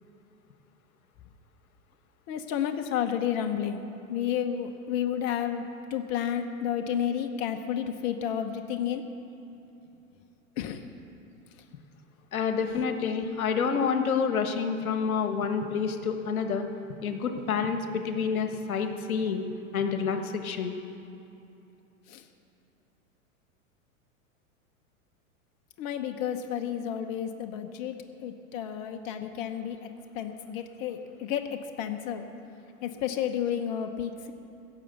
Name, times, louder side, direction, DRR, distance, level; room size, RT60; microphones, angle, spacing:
voice 1, 2.3-5.6 5.9-9.1 10.6-10.8 22.1-22.2 25.8-29.9 30.1-32.2 32.8-34.3, left 9 dB, 40° left, 6 dB, 0.9 m, -31 dB
voice 2, 12.3-16.6 17.0-19.4 19.7-20.7, left 6 dB, 80° left, 7 dB, 1.3 m, -28 dB
16.0 x 6.9 x 7.9 m, 2.8 s
hypercardioid pair, 110°, 42 cm